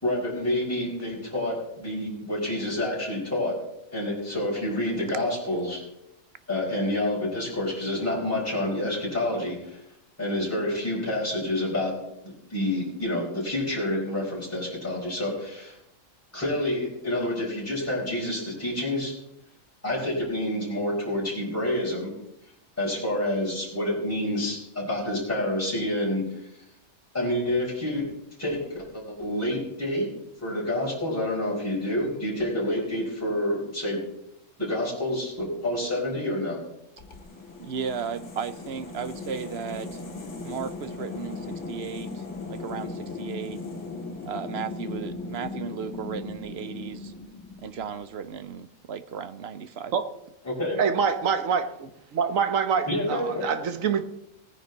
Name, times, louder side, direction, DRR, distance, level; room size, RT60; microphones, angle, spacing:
voice 1, 0.0-3.6 3.9-5.8 6.5-9.8 10.2-11.9 12.2-15.8 16.3-19.1 19.8-22.1 22.8-26.4 27.1-28.0 28.4-30.1 30.4-34.0 34.6-36.6 50.4-50.8 52.9-53.5, left 1 dB, 10° left, 4.7 m, -28 dB
sound 1, 37.0-48.1, left 3 dB, 65° left, 2.1 m, -37 dB
voice 2, 37.6-40.0 40.4-43.6 44.2-47.1 47.6-49.9, right 7 dB, 60° right, 0.9 m, -35 dB
voice 3, 50.8-54.0, right 6 dB, 80° right, 1.4 m, -25 dB
18.5 x 9.8 x 4.0 m
omnidirectional pair, 1.4 m